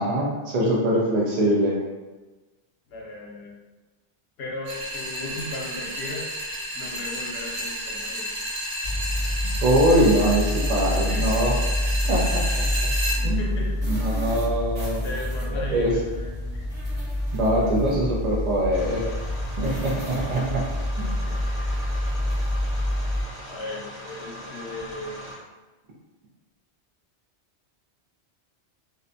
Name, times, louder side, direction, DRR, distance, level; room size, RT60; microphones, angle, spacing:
voice 1, 0.0-1.8 9.6-11.5 12.1-12.4 13.2-13.4 13.9-15.0 15.5-15.9 17.3-19.0 19.6-20.6 21.0-21.1, right 1 dB, 60° right, -4 dB, 0.4 m, -23 dB
voice 2, 2.9-3.6 4.4-6.3 6.7-8.4 10.8-12.1 13.0-13.9 15.0-16.7 20.3-20.5 21.3-21.9 23.5-25.2, left 2 dB, 65° left, -2 dB, 0.8 m, -37 dB
sound 1, 4.6-13.2, equal, 80° right, 1.1 m, -31 dB
sound 2, 8.8-23.2, left 1 dB, 40° right, 0.9 m, -27 dB
sound 3, 18.7-25.3, equal, 35° left, 0.7 m, -40 dB
2.6 x 2.1 x 2.5 m, 1.2 s
omnidirectional pair, 1.2 m